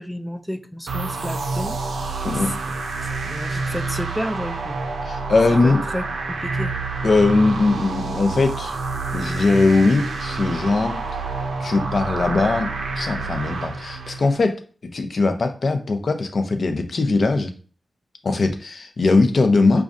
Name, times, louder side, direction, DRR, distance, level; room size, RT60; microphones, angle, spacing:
voice 1, 0.0-4.8 5.5-6.8, equal, ahead, 8 dB, 0.4 m, -32 dB
sound 1, 0.9-14.4, right 3 dB, 85° right, 0.5 m, -28 dB
voice 2, 5.0-5.8 7.0-8.8 9.1-11.0 11.6-14.6 14.9-17.5 18.2-19.8, left 3 dB, 55° left, 7 dB, 0.6 m, -20 dB
5.1 x 2.3 x 2.5 m, 0.39 s
wide cardioid pair, 90°, 0 cm